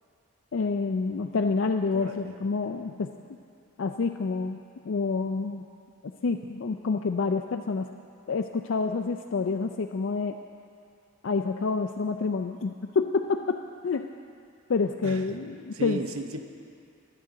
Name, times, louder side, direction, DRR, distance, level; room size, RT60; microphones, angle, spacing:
voice 1, 0.5-3.1 3.8-4.6 4.9-5.6 6.2-7.9 8.3-10.4 11.2-14.1 14.7-16.0, left 4 dB, 60° left, 5 dB, 0.4 m, -28 dB
voice 2, 1.9-2.4 15.0-15.4 15.7-16.4, right 2 dB, 85° right, 7 dB, 0.9 m, -36 dB
26.0 x 9.3 x 3.8 m, 2.4 s
head